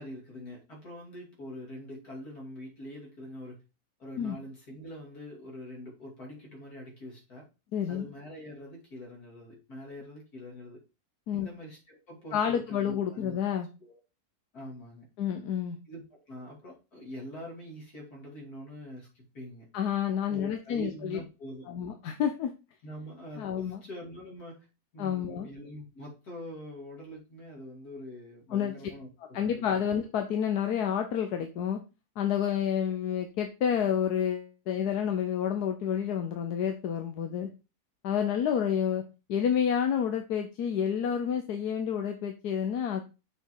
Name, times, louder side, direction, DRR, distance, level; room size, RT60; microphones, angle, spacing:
voice 1, 0.0-3.6 4.0-7.5 7.9-10.8 11.3-13.3 13.8-14.0 14.5-15.1 15.9-19.7 20.3-21.7 22.8-24.7 24.9-29.9, equal, 70° left, -2 dB, 3.3 m, -44 dB
voice 2, 7.7-8.1 11.3-11.5 12.3-13.7 15.2-15.8 19.7-21.2 21.7-22.5 23.4-23.8 25.0-25.5 28.5-28.7 29.3-31.8 32.2-37.5 38.0-39.0 39.3-43.0, left 8 dB, 90° left, 6 dB, 1.4 m, -29 dB
6.6 x 4.7 x 4.6 m, 0.29 s
omnidirectional pair, 1.6 m